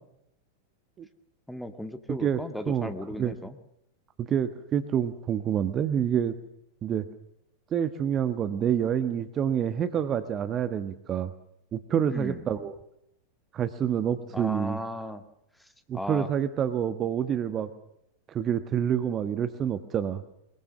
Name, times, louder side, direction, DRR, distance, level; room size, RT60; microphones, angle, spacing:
voice 1, 1.5-3.6 12.1-12.4 14.3-15.2 15.6-15.7 15.9-16.3, left 1 dB, ahead, 8 dB, 1.9 m, -36 dB
voice 2, 2.1-2.4 2.7-3.3 4.2-6.3 6.8-7.1 7.7-11.3 11.7-12.7 13.5-14.8 15.9-17.7 18.3-20.2, right 9 dB, 30° right, 12 dB, 1.4 m, -27 dB
23.0 x 22.0 x 6.6 m, 0.79 s
figure-of-eight pair, 90°, 0 cm